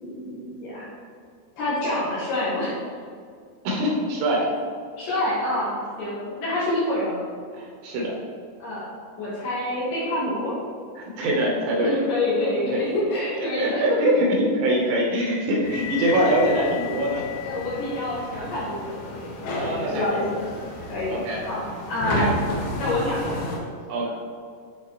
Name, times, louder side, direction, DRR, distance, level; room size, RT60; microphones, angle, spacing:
voice 1, 0.0-0.9 1.6-2.8 5.0-7.2 8.6-8.9 9.2-10.5 11.8-14.1 17.4-20.5 20.9-21.2 21.4-21.6 21.9-22.4 22.8-23.4 24.0-24.1, left 1 dB, 65° left, -8 dB, 2.4 m, -27 dB
voice 2, 3.6-4.5 7.5-8.1 11.0-12.0 12.6-12.9 13.6-14.3 14.6-17.2 19.5-20.1 21.1-21.4 22.2-22.3 23.0-23.2 23.9-24.1, right 1 dB, 75° right, -3 dB, 3.1 m, -23 dB
sound 1, 15.6-23.6, left 2 dB, 85° left, 3.1 m, -32 dB
9.2 x 4.0 x 3.0 m, 2.2 s
omnidirectional pair, 5.0 m